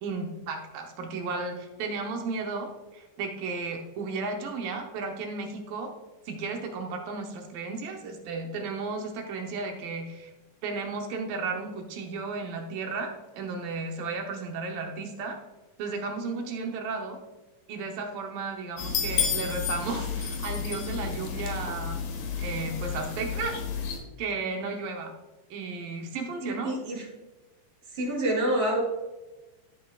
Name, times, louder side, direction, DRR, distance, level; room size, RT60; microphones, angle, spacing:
voice 1, 0.0-5.9 6.3-10.3 10.6-15.4 15.8-17.2 17.7-22.1 22.4-23.6 24.2-25.1 25.5-26.7, right 4 dB, 70° right, 2 dB, 2.5 m, -34 dB
sound 1, 18.8-24.0, left 6 dB, 65° left, 2.8 m, -31 dB
voice 2, 26.4-27.0 27.9-28.8, right 1 dB, 35° right, -4 dB, 3.8 m, -27 dB
13.5 x 7.9 x 2.4 m, 1.1 s
omnidirectional pair, 4.5 m